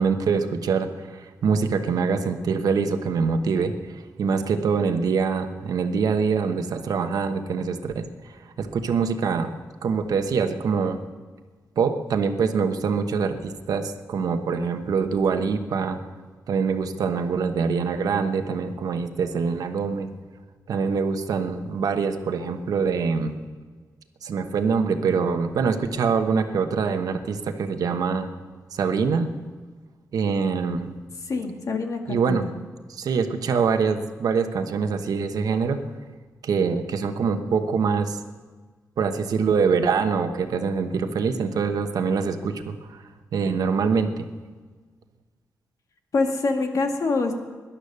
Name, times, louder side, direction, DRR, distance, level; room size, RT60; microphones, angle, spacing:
voice 1, 0.0-9.5 9.8-11.0 11.8-16.0 16.5-20.1 20.7-23.3 24.2-28.3 28.7-29.3 30.1-30.9 32.1-32.4 33.0-35.8 36.4-38.2 39.0-43.0 43.3-44.3, right 5 dB, 90° right, 7 dB, 1.2 m, -24 dB
voice 2, 31.3-32.4 46.1-47.3, left 3 dB, 65° left, 3 dB, 2.0 m, -25 dB
18.0 x 11.5 x 6.8 m, 1.4 s
cardioid pair, 95°, 6 cm